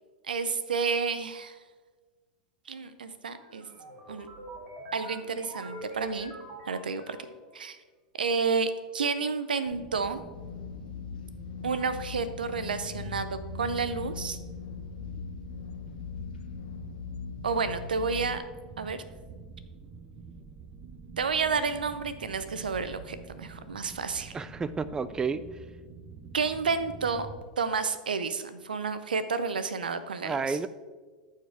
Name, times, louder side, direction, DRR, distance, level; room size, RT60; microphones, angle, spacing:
voice 1, 0.2-1.6 2.7-3.7 4.1-4.3 4.9-6.3 6.7-7.2 7.5-7.8 8.2-10.2 11.6-14.4 17.4-18.4 18.8-19.0 21.2-24.4 26.3-27.3 27.6-30.6, right 5 dB, 90° right, 12 dB, 0.6 m, -30 dB
sound 1, 3.3-7.5, right 1 dB, 50° right, 2.1 m, -43 dB
sound 2, 9.7-27.4, right 4 dB, 30° right, 1.0 m, -46 dB
sound 3, 10.3-18.4, left 9 dB, 80° left, 0.5 m, -40 dB
voice 2, 24.3-25.4 30.2-30.7, right 5 dB, 15° right, 15 dB, 0.3 m, -30 dB
13.5 x 4.7 x 3.5 m, 1.4 s
hypercardioid pair, 105°, 5 cm